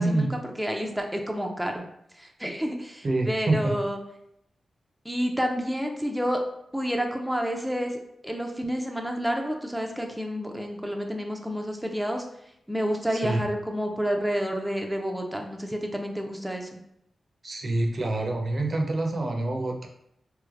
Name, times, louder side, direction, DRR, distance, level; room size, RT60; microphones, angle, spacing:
voice 1, 0.0-1.8 2.2-4.0 5.0-6.4 6.7-12.3 12.7-16.8, equal, 5° right, 1 dB, 0.5 m, -29 dB
voice 2, 3.0-3.8 13.1-13.4 17.4-19.9, right 2 dB, 50° right, 2 dB, 0.5 m, -26 dB
3.2 x 3.1 x 2.4 m, 0.75 s
cardioid pair, 60°, 0 cm